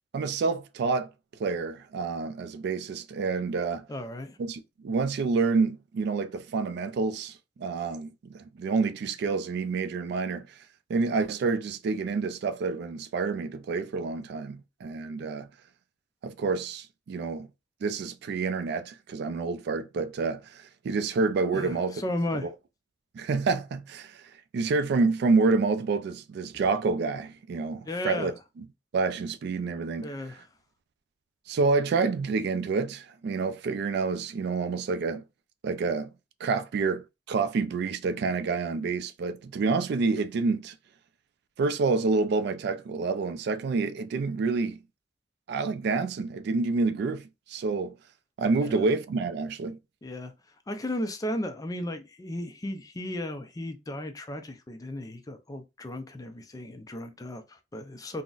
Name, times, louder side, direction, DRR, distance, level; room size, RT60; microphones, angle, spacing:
voice 1, 0.1-1.1 1.4-3.9 4.4-10.6 10.9-15.5 16.2-17.5 17.8-22.0 22.4-22.5 23.1-28.3 28.6-28.7 28.9-30.2 31.5-35.2 35.6-36.1 36.4-40.7 41.6-44.8 45.5-48.0 48.4-49.8, right 4 dB, 60° right, 0.3 m, -28 dB
voice 2, 3.9-4.4 21.5-22.5 27.9-28.3 30.0-30.5 48.6-48.8 50.0-50.3 50.7-58.2, left 1 dB, 20° left, 0.4 m, -35 dB
3.8 x 2.1 x 2.3 m
head